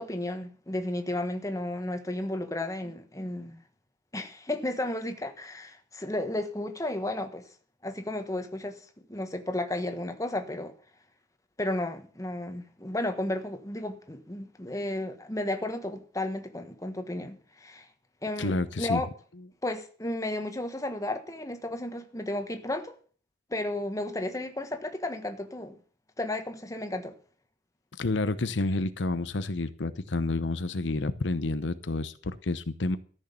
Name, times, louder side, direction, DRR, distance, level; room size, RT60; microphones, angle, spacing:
voice 1, 0.0-3.6 4.1-7.5 7.8-8.8 9.1-10.7 11.6-17.9 18.2-19.1 19.6-23.0 23.5-25.8 26.2-27.1, left 1 dB, 20° left, 1.4 m, -33 dB
voice 2, 18.4-19.0 28.0-33.0, left 2 dB, 85° left, 0.8 m, -29 dB
13.5 x 6.5 x 8.3 m
head